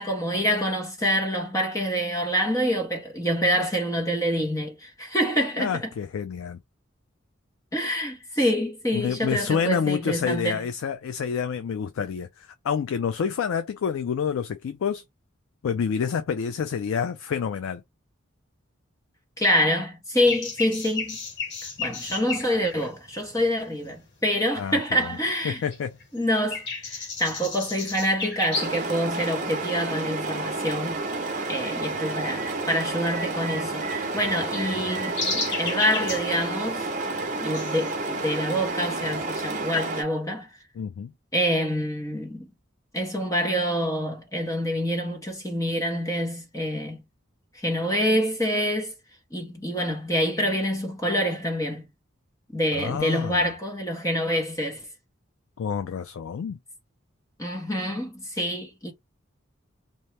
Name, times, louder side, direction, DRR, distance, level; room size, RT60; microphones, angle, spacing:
voice 1, 0.0-5.9 7.7-10.6 19.4-21.2 21.8-25.6 26.1-31.1 31.5-36.9 37.4-40.5 41.3-42.5 42.9-47.0 47.5-48.9 49.3-51.9 52.5-54.9 57.4-58.9, equal, 15° left, 0.6 m, -26 dB
voice 2, 5.6-6.6 8.3-8.5 8.9-15.0 15.6-17.8 24.6-25.2 25.4-26.0 40.8-41.1 52.7-53.4 55.6-56.6, left 7 dB, 85° left, 0.3 m, -28 dB
sound 1, 20.2-24.1 24.6-25.5 25.7-28.9 29.2-29.3 30.0-30.3 30.6-39.6, left 3 dB, 55° left, 1.1 m, -34 dB
sound 2, 28.5-40.0, right 3 dB, 35° right, 0.7 m, -30 dB
2.8 x 2.1 x 3.2 m
head